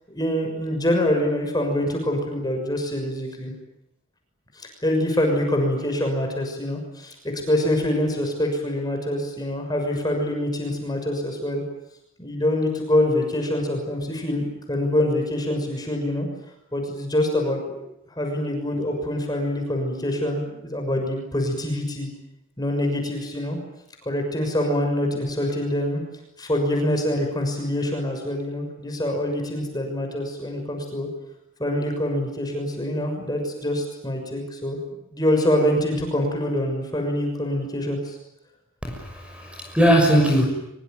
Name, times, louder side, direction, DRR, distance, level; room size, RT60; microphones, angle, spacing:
voice 1, 0.1-3.5 4.5-11.6 12.2-16.3 16.7-17.8 18.1-22.1 22.6-23.6 24.0-26.0 26.4-31.1 31.6-34.8 35.1-38.2, left 1 dB, 20° left, 3 dB, 6.4 m, -25 dB
voice 2, 38.8-40.5, equal, 5° right, 2 dB, 6.2 m, -19 dB
24.5 x 24.0 x 9.4 m, 0.82 s
head